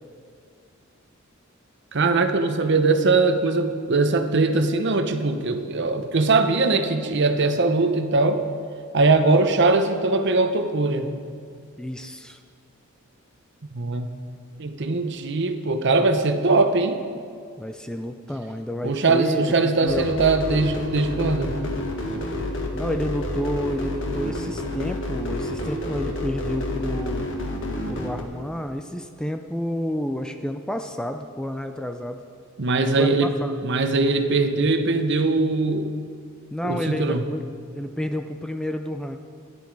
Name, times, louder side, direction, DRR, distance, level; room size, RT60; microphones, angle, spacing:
voice 1, 1.9-8.4 8.9-11.1 13.7-14.1 14.6-17.0 18.8-21.5 32.6-33.3 33.6-35.9 36.6-37.2, right 3 dB, 55° right, 7 dB, 0.9 m, -21 dB
voice 2, 11.8-12.4 17.6-20.1 22.7-27.2 27.9-32.2 33.0-33.5 36.5-37.5 37.8-39.2, equal, 5° left, 6 dB, 0.4 m, -30 dB
sound 1, 19.9-28.2, left 1 dB, 60° left, 1.6 m, -29 dB
14.5 x 11.0 x 4.7 m, 2.2 s
head